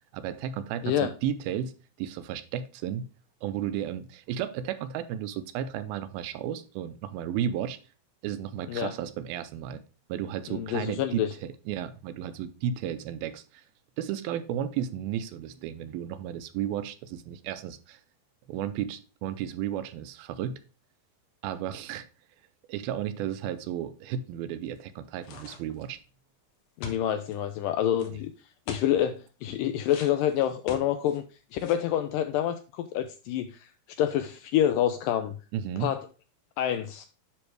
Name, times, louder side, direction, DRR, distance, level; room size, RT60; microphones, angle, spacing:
voice 1, 0.1-1.7 2.0-3.1 3.4-7.8 8.2-9.8 10.1-13.6 14.0-18.0 18.5-20.6 21.4-22.1 22.7-26.0 35.5-35.9, right 9 dB, 85° right, 11 dB, 2.5 m, -33 dB
voice 2, 10.5-11.3 26.8-28.3 28.7-31.2 31.5-33.7 34.0-35.3 35.8-36.1 36.6-37.1, left 11 dB, 80° left, 9 dB, 1.9 m, -27 dB
sound 1, 25.2-25.9 26.8-27.4 28.0-28.1 28.7-28.9 29.9-31.2 31.6-31.9, left 5 dB, 65° left, 2.0 m, -41 dB
10.0 x 3.5 x 4.6 m, 0.34 s
omnidirectional pair, 4.3 m